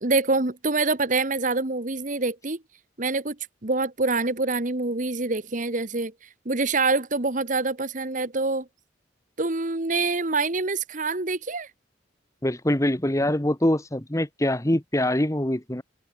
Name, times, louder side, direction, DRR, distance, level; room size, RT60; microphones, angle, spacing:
voice 1, 0.0-2.6 3.0-3.4 3.6-6.1 6.4-8.7 9.4-11.7, right 3 dB, 45° right, 1.5 m, -25 dB
voice 2, 12.4-15.8, left 1 dB, 15° left, 1.3 m, -24 dB
open air
head